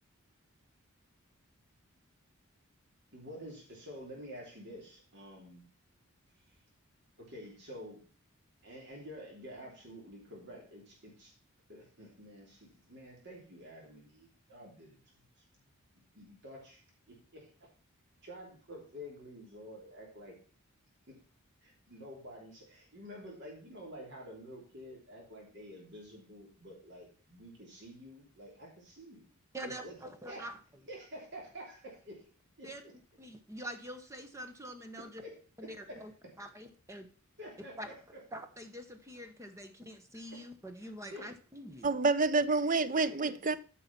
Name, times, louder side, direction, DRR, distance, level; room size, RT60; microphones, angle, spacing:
voice 1, 3.1-5.6 6.5-6.6 7.2-8.0 8.6-11.3 11.7-15.4 16.1-17.7 18.2-20.4 21.1-21.2 21.6-29.3 29.6-29.9 30.3-30.5 30.9-32.3 32.6-32.9 35.2-35.3 35.9-36.0 37.4-38.2 40.3-40.4 41.1-41.3 42.9-43.5, equal, 50° right, 3.2 m, -49 dB
voice 2, 29.5-30.6 32.6-32.8 33.2-35.2 35.6-36.1 36.4-37.1 37.8-37.9 38.3-42.0, right 1 dB, 15° right, 0.9 m, -45 dB
voice 3, 41.8-43.6, right 3 dB, 35° right, 0.5 m, -28 dB
9.3 x 5.8 x 5.8 m
head